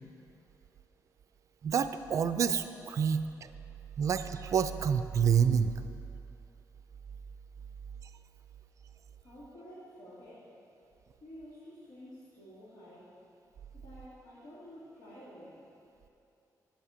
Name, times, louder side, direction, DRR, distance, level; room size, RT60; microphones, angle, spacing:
voice 1, 1.6-3.5 4.0-5.7, right 7 dB, 50° right, 11 dB, 0.4 m, -28 dB
voice 2, 9.2-10.5 11.2-13.1 13.7-15.6, equal, 75° left, -11 dB, 2.6 m, -50 dB
9.9 x 7.4 x 5.0 m, 2.7 s
wide cardioid pair, 160°, 7 cm